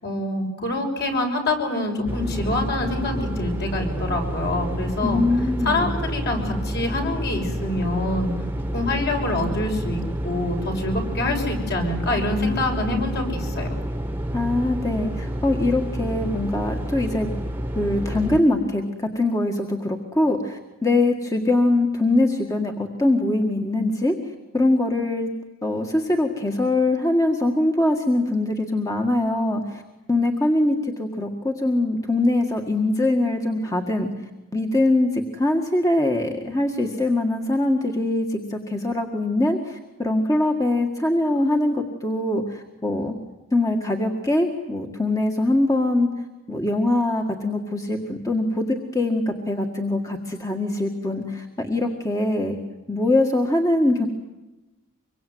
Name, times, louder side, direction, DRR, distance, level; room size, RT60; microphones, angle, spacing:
voice 1, 0.0-5.2 5.6-8.3 8.7-13.7, left 2 dB, 50° left, 3 dB, 6.4 m, -26 dB
sound 1, 2.0-18.4, right 1 dB, 10° right, 1.6 m, -29 dB
voice 2, 5.0-5.9 14.3-17.3 17.8-24.2 24.5-25.3 25.6-29.8 30.1-34.1 34.5-43.2 43.5-46.1 46.5-52.6 52.9-54.1, left 2 dB, 15° left, 3 dB, 1.8 m, -22 dB
25.5 x 23.5 x 9.4 m, 1.0 s
head